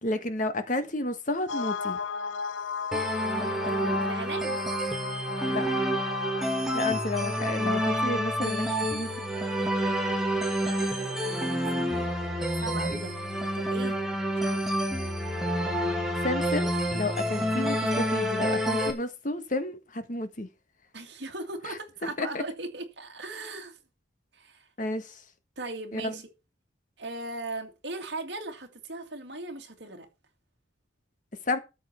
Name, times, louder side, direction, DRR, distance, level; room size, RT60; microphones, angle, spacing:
voice 1, 0.0-2.0 5.4-5.8 6.7-9.1 16.2-20.5 21.7-22.4 24.8-25.2 25.9-26.1 31.5-31.6, left 1 dB, 40° left, 1.5 m, -31 dB
sound 1, 1.5-8.2, left 5 dB, 80° left, 0.7 m, -34 dB
sound 2, 2.9-18.9, equal, ahead, 2.3 m, -28 dB
voice 2, 3.4-4.7 10.6-12.0 12.6-13.2 13.5-14.0 14.3-14.7 20.9-23.8 24.3-24.7 25.6-26.3 27.0-30.1, right 2 dB, 60° right, 2.5 m, -39 dB
13.0 x 7.7 x 4.5 m
head